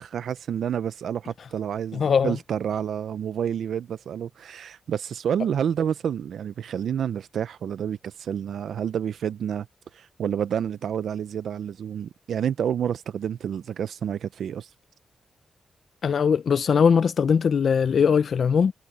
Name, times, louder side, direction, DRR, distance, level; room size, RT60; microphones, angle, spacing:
voice 1, 0.0-9.7 9.9-14.7, right 8 dB, 85° right, 0.4 m, -29 dB
voice 2, 1.9-2.3 16.0-18.7, left 6 dB, 60° left, 0.5 m, -20 dB
wide cardioid pair, 110°, 0 cm